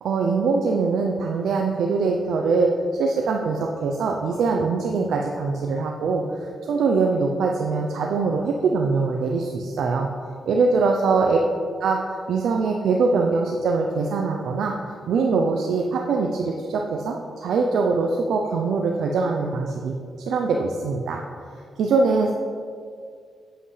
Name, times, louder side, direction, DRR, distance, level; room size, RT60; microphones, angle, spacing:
voice 1, 0.0-10.1 10.5-11.4 11.8-14.7 15.1-21.2 21.5-22.3, right 4 dB, 80° right, 1 dB, 0.5 m, -23 dB
7.9 x 7.7 x 3.3 m, 2.2 s
supercardioid pair, 55°, 0 cm